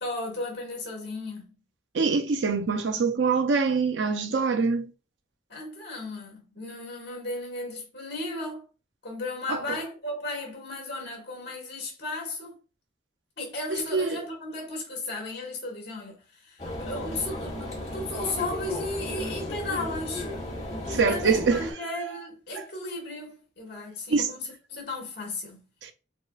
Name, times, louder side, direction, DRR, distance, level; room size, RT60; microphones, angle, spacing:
voice 1, 0.0-1.6 5.5-8.7 9.0-12.6 13.4-17.7 17.9-20.3 20.9-25.6, left 2 dB, 65° left, 1.6 m, -35 dB
voice 2, 1.9-4.9 9.5-9.6 13.9-14.2 20.9-21.7 24.1-24.3 25.8-25.9, right 4 dB, 90° right, 0.6 m, -24 dB
sound 1, 16.6-21.7, left 1 dB, 40° left, 1.8 m, -34 dB
4.5 x 2.4 x 2.3 m
head